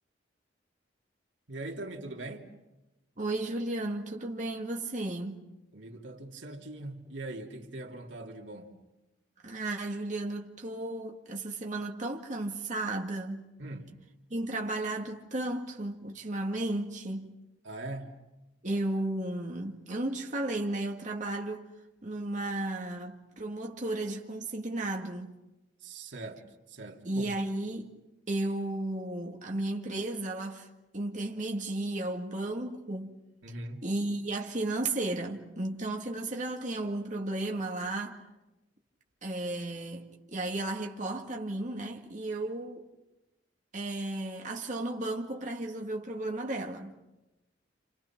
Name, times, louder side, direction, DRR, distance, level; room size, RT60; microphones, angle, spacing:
voice 1, 1.5-2.5 5.7-8.7 13.6-13.9 17.6-18.2 25.8-27.3 33.4-33.9, right 2 dB, 90° right, 3.1 m, -41 dB
voice 2, 3.2-5.4 9.4-13.4 14.3-17.3 18.6-21.6 22.0-25.3 27.1-27.9 28.3-30.7 30.9-33.1 33.8-38.2 39.2-42.8 43.7-46.9, right 2 dB, 45° right, 2.0 m, -34 dB
29.5 x 29.0 x 6.0 m
head